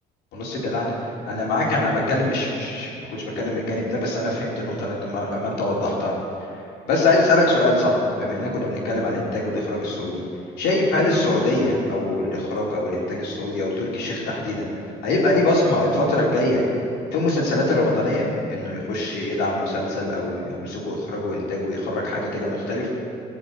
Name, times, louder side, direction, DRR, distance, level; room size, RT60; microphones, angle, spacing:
voice 1, 0.3-0.9 1.3-6.1 6.9-10.2 10.6-14.7 15.0-16.6 17.1-22.9, left 2 dB, 80° left, -4 dB, 4.0 m, -23 dB
16.0 x 7.2 x 8.6 m, 2.5 s
cardioid pair, 110°, 17 cm